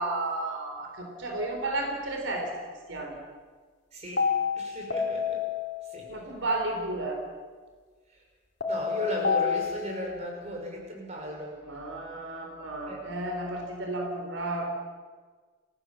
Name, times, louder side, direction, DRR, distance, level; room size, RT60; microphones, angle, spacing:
voice 1, 0.0-2.5 2.9-3.2 6.1-7.2 11.6-14.7, right 2 dB, 75° right, 2 dB, 3.7 m, -32 dB
voice 2, 3.9-4.2 4.6-5.4 5.9-6.0 8.7-11.6 12.8-13.0, equal, 35° right, 0 dB, 6.1 m, -35 dB
sound 1, 4.2-6.1 8.6-10.1, left 6 dB, 55° left, 3.1 m, -29 dB
29.5 x 14.5 x 7.6 m, 1.5 s
head